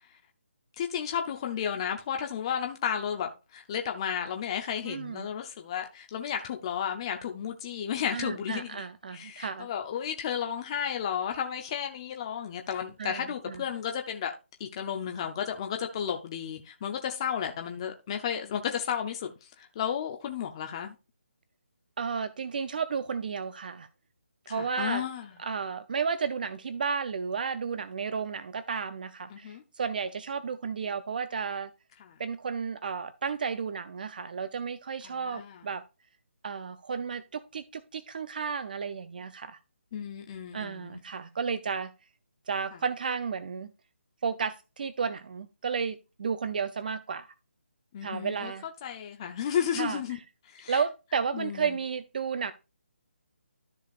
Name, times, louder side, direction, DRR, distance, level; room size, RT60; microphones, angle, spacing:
voice 1, 0.8-8.9 9.1-14.3 14.6-20.9 24.5-25.3 29.3-29.6 32.0-32.2 35.0-35.6 39.9-41.0 47.9-48.5 48.8-50.2 50.5-50.8 51.3-51.8, left 8 dB, 25° left, 0.6 m, -33 dB
voice 2, 4.8-5.3 8.1-9.7 13.0-13.6 22.0-23.9 24.5-25.0 25.4-31.7 32.2-35.8 36.4-39.6 40.5-41.9 42.5-43.7 44.2-47.3 48.0-48.7 49.8-50.0 50.7-52.5, right 6 dB, 45° right, 0.5 m, -33 dB
13.0 x 5.0 x 2.4 m
hypercardioid pair, 165°, 7 cm